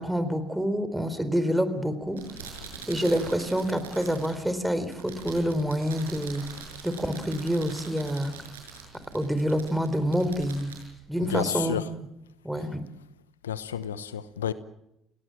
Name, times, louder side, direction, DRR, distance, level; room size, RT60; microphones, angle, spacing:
voice 1, 0.0-2.2 2.9-6.4 6.8-8.3 9.1-10.7 11.1-11.8 12.4-12.8, equal, 5° right, 4.0 m, -27 dB
sound 1, 2.0-11.8, right 5 dB, 90° right, 6.2 m, -44 dB
voice 2, 11.3-11.8 13.4-14.5, left 9 dB, 90° left, 0.9 m, -30 dB
29.5 x 18.5 x 7.7 m
hypercardioid pair, 60°, 0 cm